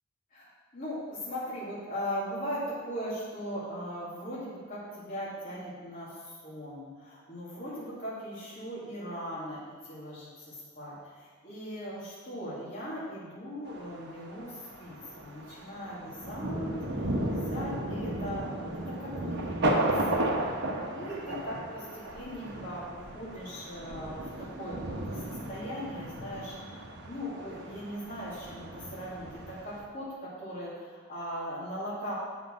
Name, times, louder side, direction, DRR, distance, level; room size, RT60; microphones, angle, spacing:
voice 1, 0.3-20.4 20.9-32.1, equal, 40° left, -9 dB, 2.4 m, -39 dB
Thunder, 13.7-29.8, right 1 dB, 50° right, 1.1 m, -35 dB
8.1 x 5.6 x 6.1 m, 1.5 s
head